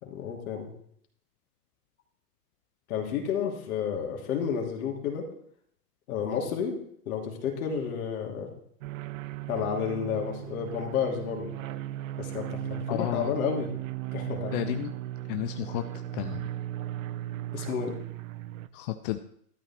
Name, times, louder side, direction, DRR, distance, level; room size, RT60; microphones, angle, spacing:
voice 1, 0.0-0.7 2.9-5.3 6.1-6.8 7.1-8.5 9.5-11.5 12.2-13.7 14.1-14.6 17.5-17.9, left 7 dB, 60° left, 1 dB, 3.0 m, -31 dB
sound 1, 8.8-18.7, right 14 dB, 55° right, 0.7 m, -37 dB
voice 2, 12.9-13.4 14.5-15.0 15.3-15.8 16.1-16.5 18.7-19.2, left 14 dB, 35° left, 8 dB, 0.6 m, -32 dB
12.5 x 9.0 x 4.4 m, 0.68 s
hypercardioid pair, 120°, 48 cm